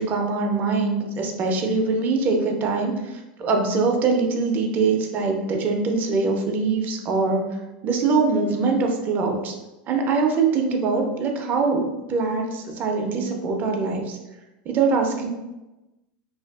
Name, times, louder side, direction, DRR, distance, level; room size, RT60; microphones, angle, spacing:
voice 1, 0.0-7.6 7.8-9.6 9.9-14.2 14.7-15.3, right 4 dB, 40° right, 2 dB, 0.5 m, -23 dB
2.5 x 2.4 x 2.3 m, 1.0 s
supercardioid pair, 110°, 5 cm